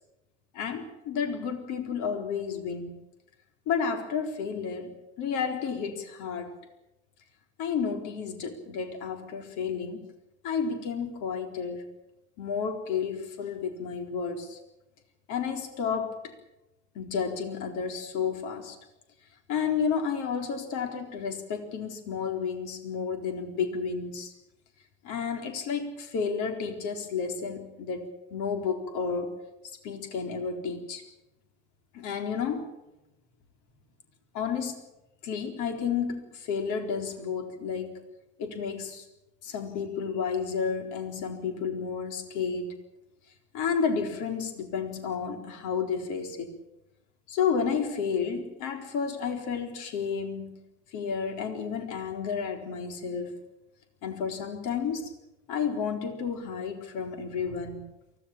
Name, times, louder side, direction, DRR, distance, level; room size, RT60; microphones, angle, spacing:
voice 1, 0.5-3.0 3.7-6.5 7.6-10.1 10.4-11.9 12.4-14.6 15.3-16.3 16.9-18.8 19.5-24.3 25.0-29.3 29.6-31.0 31.9-32.7 34.3-34.8 35.2-38.0 38.4-39.0 39.4-42.7 43.5-46.5 47.3-50.6 50.9-53.4 54.0-55.1 55.5-57.8, left 6 dB, 55° left, 6 dB, 4.1 m, -31 dB
24.0 x 17.0 x 8.7 m, 0.96 s
hypercardioid pair, 75°, 35 cm